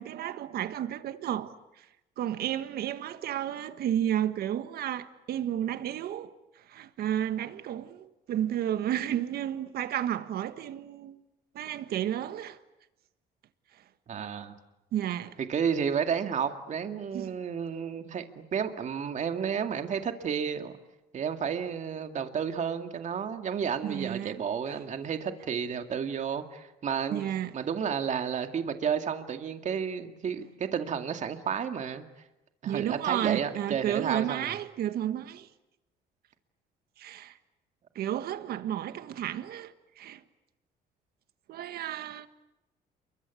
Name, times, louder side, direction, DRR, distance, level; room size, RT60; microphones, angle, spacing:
voice 1, 0.0-1.5 2.2-6.4 6.7-11.2 11.5-12.6 14.9-15.4 17.1-17.4 23.8-24.4 27.1-27.5 32.6-35.5 37.0-37.4 37.9-40.2 41.5-42.3, right 11 dB, 65° right, 1.5 m, -32 dB
voice 2, 14.1-14.6 15.5-20.7 21.1-27.3 27.5-32.0 32.6-34.6, right 7 dB, 45° right, 2.2 m, -31 dB
28.5 x 23.5 x 8.4 m
cardioid pair, 110°, 17 cm